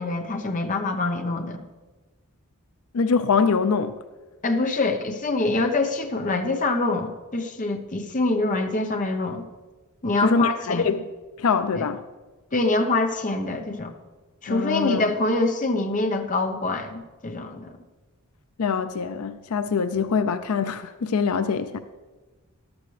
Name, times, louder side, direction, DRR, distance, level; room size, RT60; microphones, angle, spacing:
voice 1, 0.0-1.6 4.4-9.4 10.0-10.9 11.7-11.9 12.5-13.9 14.4-17.7, left 2 dB, 35° left, 0.9 m, -25 dB
voice 2, 2.9-4.0 10.2-11.0 11.4-12.0 14.5-15.1 18.6-21.8, left 5 dB, 75° left, 0.5 m, -24 dB
13.5 x 12.0 x 3.3 m
head